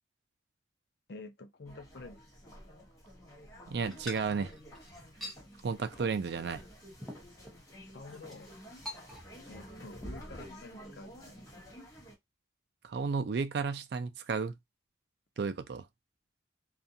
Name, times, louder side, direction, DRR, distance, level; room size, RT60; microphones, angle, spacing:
voice 1, 1.1-2.2 7.9-8.8 9.5-11.1, left 3 dB, 60° left, 0.5 m, -48 dB
sound 1, 1.6-12.1, equal, 15° left, 1.0 m, -50 dB
voice 2, 3.7-4.5 5.6-6.6 12.8-14.5 15.4-15.8, right 5 dB, 60° right, 0.4 m, -33 dB
sound 2, 3.9-5.4 6.0-6.2 6.6-6.7 7.0-7.6 8.1-8.4 8.9-9.5 9.8-10.1, equal, ahead, 0.6 m, -45 dB
2.4 x 2.2 x 2.6 m
head